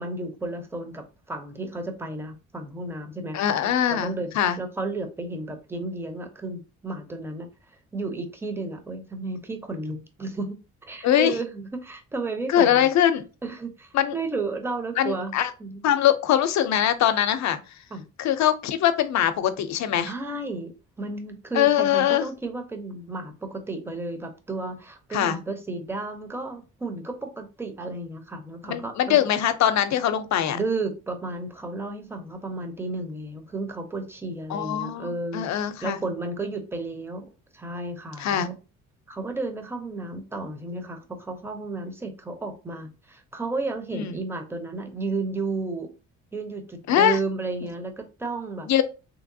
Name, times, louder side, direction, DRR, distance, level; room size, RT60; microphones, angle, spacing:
voice 1, 0.0-3.6 3.9-4.3 4.6-7.5 7.9-10.6 10.8-12.9 13.4-15.3 15.6-15.9 17.9-18.0 20.1-20.7 21.0-29.2 30.5-38.6 39.1-45.9 46.3-48.7, right 3 dB, 10° right, 0.7 m, -33 dB
voice 2, 3.3-4.6 11.0-11.3 12.5-13.2 13.9-14.1 15.0-15.5 15.8-17.6 18.2-20.1 21.5-22.3 25.1-25.4 28.6-30.6 34.5-36.0 38.2-38.5 43.9-44.1 46.9-47.2 48.7-48.8, left 10 dB, 65° left, 0.5 m, -22 dB
3.2 x 2.8 x 2.6 m
cardioid pair, 90°, 30 cm